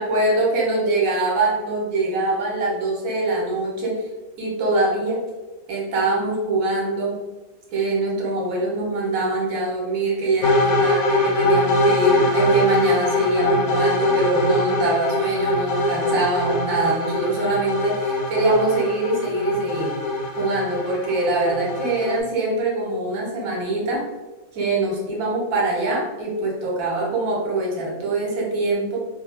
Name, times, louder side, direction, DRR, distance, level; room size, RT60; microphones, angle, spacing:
voice 1, 0.0-4.0 4.4-5.2 5.7-7.1 7.7-19.9 20.4-24.0 24.5-29.0, right 2 dB, 80° right, -3 dB, 1.1 m, -23 dB
sound 1, 10.4-22.2, left 1 dB, 85° left, 1.0 m, -22 dB
2.3 x 2.2 x 3.2 m, 1.2 s
omnidirectional pair, 1.4 m